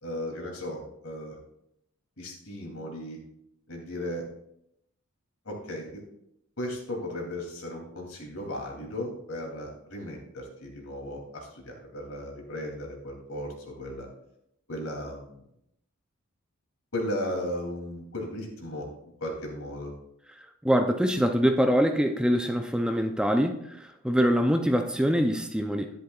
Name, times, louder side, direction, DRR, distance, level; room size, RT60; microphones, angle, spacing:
voice 1, 0.0-1.4 2.2-3.2 3.7-4.2 5.4-6.0 6.6-14.1 14.7-15.4 16.9-18.9 19.2-19.9, left 1 dB, 85° left, 0 dB, 3.0 m, -36 dB
voice 2, 20.6-26.0, equal, 5° right, 5 dB, 0.5 m, -24 dB
11.5 x 10.5 x 2.4 m, 0.78 s
head